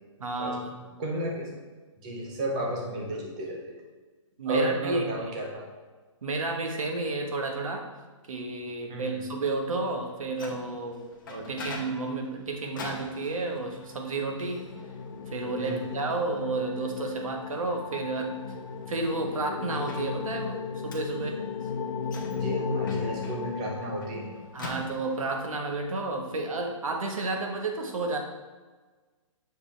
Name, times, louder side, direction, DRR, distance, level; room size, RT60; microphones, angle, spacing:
voice 1, 0.2-0.8 4.4-5.3 6.2-7.9 8.3-14.7 15.3-18.4 18.9-21.4 24.5-28.2, right 3 dB, 90° right, 2 dB, 1.4 m, -31 dB
voice 2, 1.0-1.5 2.0-3.8 4.5-5.7 8.9-9.2 15.6-16.0 22.3-24.3, right 1 dB, 15° right, 0 dB, 0.5 m, -32 dB
Microwave oven, 10.0-25.5, left 2 dB, 40° left, 0.9 m, -46 dB
sound 1, 13.8-24.6, left 5 dB, 85° left, 0.5 m, -35 dB
7.0 x 4.8 x 3.4 m, 1.3 s
hypercardioid pair, 180°, 17 cm